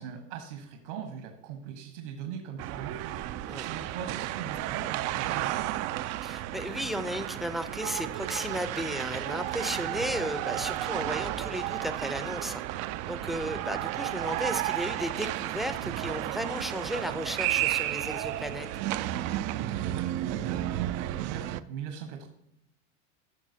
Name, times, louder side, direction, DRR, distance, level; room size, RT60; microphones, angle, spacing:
voice 1, 0.0-5.7 19.6-22.3, right 7 dB, 70° right, 5 dB, 1.4 m, -41 dB
sound 1, 2.6-21.6, right 14 dB, 45° right, 0.5 m, -32 dB
voice 2, 6.2-12.6 13.1-18.7, equal, ahead, 10 dB, 0.6 m, -34 dB
14.0 x 6.1 x 2.8 m, 0.81 s
hypercardioid pair, 90°, 37 cm